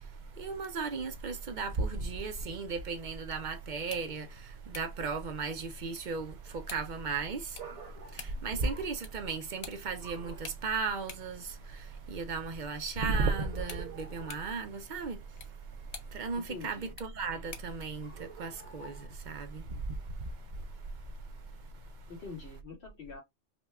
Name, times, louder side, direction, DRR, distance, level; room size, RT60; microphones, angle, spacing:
voice 1, 0.4-4.3 4.7-7.6 8.1-15.2 16.1-19.6, right 4 dB, 55° right, 0.6 m, -35 dB
sound 1, 3.7-17.8, left 5 dB, 40° left, 0.6 m, -53 dB
sound 2, 5.9-20.7, right 6 dB, 80° right, 1.6 m, -53 dB
voice 2, 16.4-16.9 22.1-23.2, left 4 dB, 60° left, 2.0 m, -45 dB
5.2 x 2.2 x 2.3 m
omnidirectional pair, 1.2 m